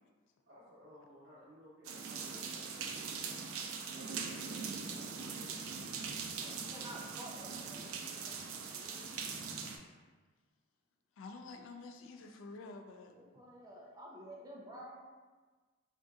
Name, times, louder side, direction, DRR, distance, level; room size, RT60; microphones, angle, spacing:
voice 1, 0.5-3.0 3.8-5.5, equal, 70° right, -9 dB, 1.0 m, -57 dB
sound 1, 1.8-9.8, right 5 dB, 85° right, 0.4 m, -41 dB
voice 2, 6.4-9.0 13.1-14.9, right 1 dB, 20° right, -3 dB, 0.5 m, -51 dB
voice 3, 11.2-13.2, left 3 dB, 70° left, 4 dB, 0.3 m, -49 dB
3.6 x 2.6 x 2.4 m, 1.4 s
head